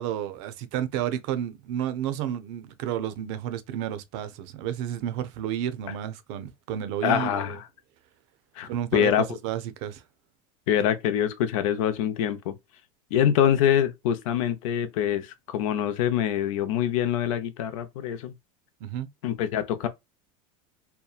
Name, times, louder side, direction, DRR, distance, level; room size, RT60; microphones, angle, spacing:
voice 1, 0.0-7.5 8.6-10.0 18.8-19.1, right 10 dB, 60° right, 0.5 m, -31 dB
voice 2, 7.0-7.6 8.6-9.2 10.7-12.6 13.1-18.3 19.2-19.9, left 9 dB, 75° left, 0.6 m, -25 dB
2.8 x 2.2 x 2.3 m
supercardioid pair, 150°, 17 cm